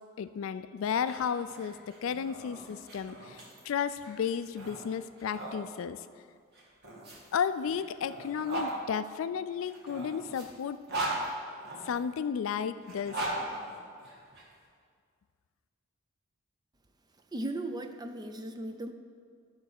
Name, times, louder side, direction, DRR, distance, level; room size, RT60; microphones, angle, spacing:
voice 1, 0.2-3.4 3.7-6.0 7.3-10.8 11.9-13.2, left 7 dB, 70° left, 13 dB, 0.3 m, -33 dB
sound 1, 0.9-5.6 6.5-8.7 9.6-12.0 12.8-14.4, right 2 dB, 50° right, 1.9 m, -39 dB
voice 2, 17.3-18.9, right 1 dB, 20° right, 6 dB, 0.5 m, -37 dB
12.0 x 4.0 x 6.6 m, 2.1 s
head